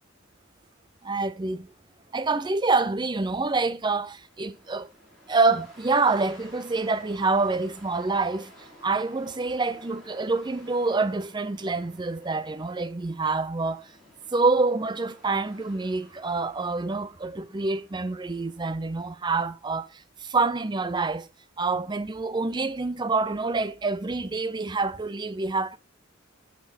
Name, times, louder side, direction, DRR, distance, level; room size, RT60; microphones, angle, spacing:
voice 1, 1.0-1.7 2.1-4.9 5.3-13.9 14.3-21.3 21.6-25.8, right 3 dB, 20° right, 0.5 m, -27 dB
sound 1, 3.5-19.1, left 1 dB, ahead, 5.4 m, -54 dB
13.5 x 5.9 x 4.1 m
head